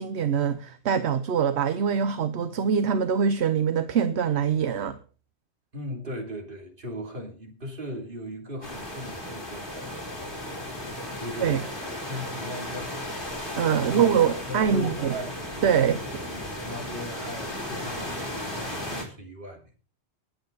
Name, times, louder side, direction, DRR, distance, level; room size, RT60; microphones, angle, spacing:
voice 1, 0.0-5.0 11.4-11.6 13.6-15.2 15.6-16.0, right 7 dB, 75° right, 1.1 m, -24 dB
voice 2, 5.7-12.9 13.8-14.2 14.5-15.4 16.3-19.6, equal, 50° right, 3.3 m, -38 dB
sound 1, 8.6-19.0, left 1 dB, 50° left, 4.5 m, -35 dB
20.5 x 9.1 x 4.0 m
omnidirectional pair, 1.1 m